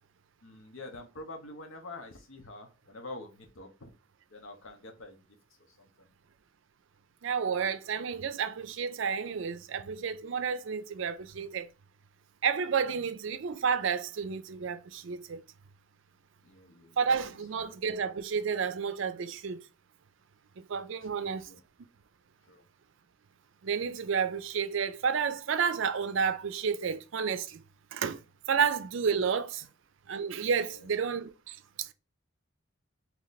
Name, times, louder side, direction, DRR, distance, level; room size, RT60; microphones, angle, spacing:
voice 1, 0.4-3.9 4.3-5.4 5.7-6.1 12.9-13.1 16.4-17.0 17.2-17.4 21.0-21.6 22.5-22.7 28.5-28.6 30.6-30.9, left 2 dB, 75° left, 1.0 m, -47 dB
voice 2, 7.2-11.7 12.4-15.4 17.0-19.6 20.7-21.5 23.6-27.6 27.9-28.2 28.5-29.6 30.1-31.9, right 6 dB, 65° right, 0.4 m, -31 dB
3.2 x 3.0 x 4.0 m
head